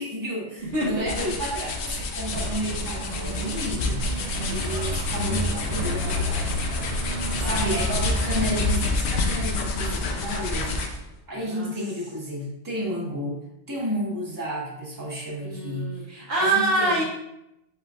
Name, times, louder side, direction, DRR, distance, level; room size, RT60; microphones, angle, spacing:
voice 1, 0.0-6.5 7.4-11.0 11.3-16.0 16.4-17.0, equal, 20° right, -6 dB, 1.3 m, -32 dB
sound 1, 0.7-11.1, left 3 dB, 70° left, 0.9 m, -29 dB
voice 2, 0.7-1.3 3.7-3.9 4.4-4.8 7.4-7.8 9.7-10.0 11.5-11.7 15.4-17.0, right 2 dB, 60° right, -4 dB, 1.1 m, -27 dB
Truck, 2.3-8.7, equal, 45° right, 0.6 m, -31 dB
4.8 x 4.7 x 2.4 m, 0.84 s
omnidirectional pair, 1.2 m